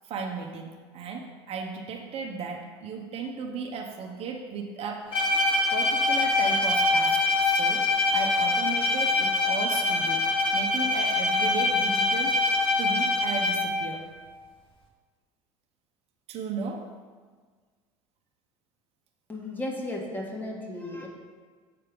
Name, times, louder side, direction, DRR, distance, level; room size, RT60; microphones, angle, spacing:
voice 1, 0.0-5.3 5.7-7.2 7.4-14.1 16.3-16.9, right 5 dB, 45° right, 1 dB, 1.0 m, -35 dB
Bowed string instrument, 5.1-13.9, left 2 dB, 40° left, 1.6 m, -24 dB
voice 2, 19.3-21.1, left 1 dB, 15° left, -1 dB, 1.7 m, -34 dB
7.8 x 4.4 x 5.2 m, 1.5 s
supercardioid pair, 90°, 14 cm